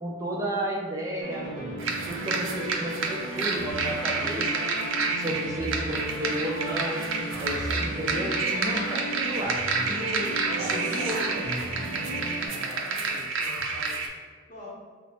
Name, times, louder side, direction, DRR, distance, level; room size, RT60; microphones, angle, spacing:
voice 1, 0.0-4.6 5.2-7.0 7.4-9.6 9.9-11.6, equal, 15° right, -2 dB, 0.4 m, -33 dB
sound 1, 1.2-12.5, right 1 dB, 35° right, 0.9 m, -36 dB
sound 2, 1.8-14.1, right 4 dB, 70° right, 0.5 m, -30 dB
voice 2, 5.2-5.6 12.5-14.1 14.5-14.7, left 1 dB, 35° left, -6 dB, 0.7 m, -44 dB
5.4 x 2.0 x 2.8 m, 1.5 s
head